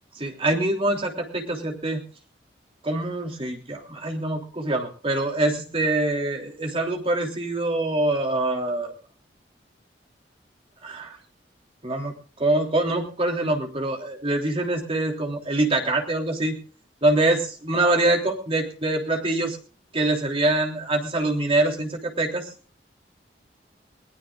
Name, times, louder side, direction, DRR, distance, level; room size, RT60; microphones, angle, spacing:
voice 1, 0.2-2.0 2.8-8.9 10.8-11.2 11.8-12.1 12.4-16.6 17.0-19.6 19.9-22.5, right 2 dB, 35° right, 2 dB, 3.3 m, -24 dB
21.5 x 19.5 x 2.4 m, 0.38 s
head